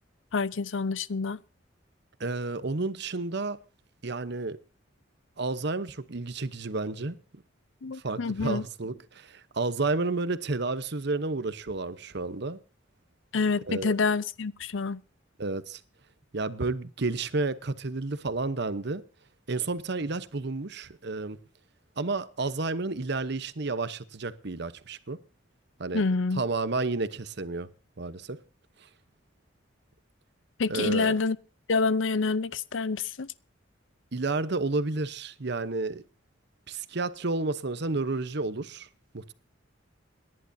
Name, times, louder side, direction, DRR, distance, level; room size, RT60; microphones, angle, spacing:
voice 1, 0.3-1.4 7.8-8.6 13.3-15.0 25.9-26.4 30.6-31.4 31.7-33.3, left 4 dB, 85° left, 0.6 m, -27 dB
voice 2, 2.2-3.6 4.0-4.6 5.4-7.2 7.9-12.6 13.7-13.9 15.4-15.8 16.3-19.0 19.5-21.4 22.0-25.2 25.8-26.0 26.4-27.7 28.0-28.4 30.7-31.1 34.1-36.0 36.7-38.9 39.1-39.3, right 3 dB, 60° right, 1.0 m, -31 dB
28.5 x 11.0 x 2.7 m
head